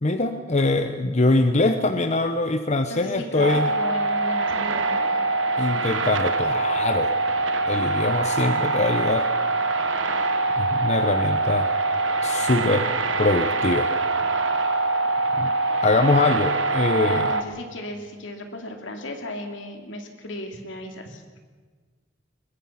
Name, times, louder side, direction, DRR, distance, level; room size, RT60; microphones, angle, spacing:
voice 1, 0.0-3.7 5.6-7.1 7.7-9.3 10.6-11.7 12.2-12.9 13.2-13.9 15.4-15.5 15.8-17.3, left 2 dB, 40° left, 8 dB, 0.8 m, -23 dB
voice 2, 2.7-5.2 16.9-21.4, left 1 dB, 75° left, 4 dB, 2.7 m, -36 dB
sound 1, 3.4-17.4, right 3 dB, 80° right, 1.5 m, -24 dB
22.0 x 20.5 x 5.8 m, 1.5 s
head